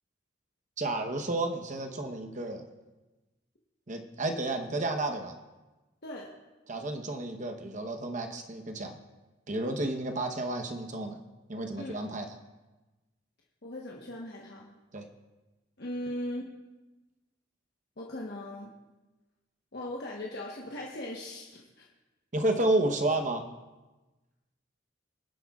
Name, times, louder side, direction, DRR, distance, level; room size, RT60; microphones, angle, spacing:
voice 1, 0.8-2.6 3.9-5.3 6.7-9.0 9.5-11.2 11.5-12.3 14.9-15.1 22.3-23.5, right 2 dB, 40° right, 5 dB, 0.9 m, -31 dB
voice 2, 13.6-14.7 15.8-16.4 18.0-18.7 19.7-21.9, left 1 dB, 55° left, -3 dB, 1.1 m, -39 dB
23.5 x 7.9 x 2.4 m, 1.1 s
head